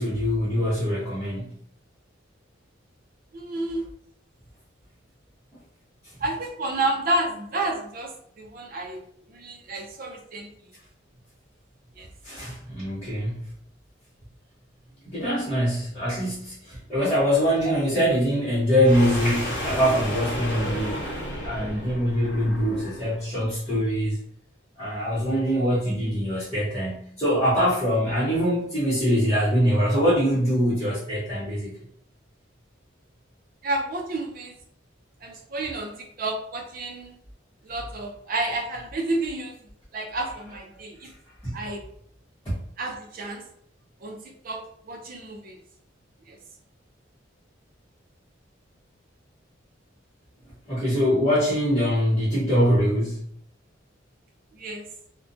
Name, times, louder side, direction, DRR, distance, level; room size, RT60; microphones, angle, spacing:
voice 1, 0.0-1.6 12.2-13.4 15.0-21.0 21.4-24.2 24.8-31.7 41.4-41.6 42.4-42.6 50.7-53.3, equal, 15° left, -13 dB, 0.8 m, -23 dB
voice 2, 3.3-3.8 6.2-9.0 9.3-10.5 12.0-12.1 17.6-17.8 33.6-34.5 35.2-37.1 37.6-39.6 39.9-41.1 41.5-41.8 42.8-43.4 44.0-45.6 46.3-46.4 54.5-54.8, right 2 dB, 50° right, 3 dB, 0.5 m, -30 dB
sound 1, 18.8-23.1, equal, 75° left, 0.9 m, -32 dB
2.4 x 2.1 x 2.6 m, 0.67 s
head